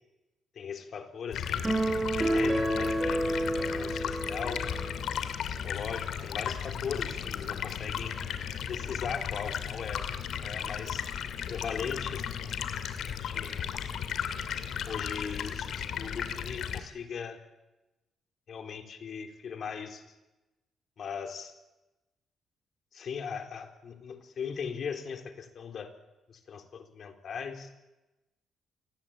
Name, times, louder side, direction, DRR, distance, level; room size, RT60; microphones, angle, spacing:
voice 1, 0.5-1.6 2.1-4.6 5.5-8.1 8.7-10.0 10.4-11.1 11.5-12.3 13.2-13.7 14.8-17.4 18.5-20.1 21.0-21.5 22.9-25.9 26.3-27.7, left 6 dB, 55° left, 6 dB, 3.9 m, -39 dB
Stream, 1.3-16.8, left 8 dB, 70° left, 2.7 m, -35 dB
sound 1, 1.6-5.1, right 1 dB, 15° right, 5.5 m, -29 dB
27.5 x 19.0 x 9.0 m, 1.0 s
cardioid pair, 90°, 0 cm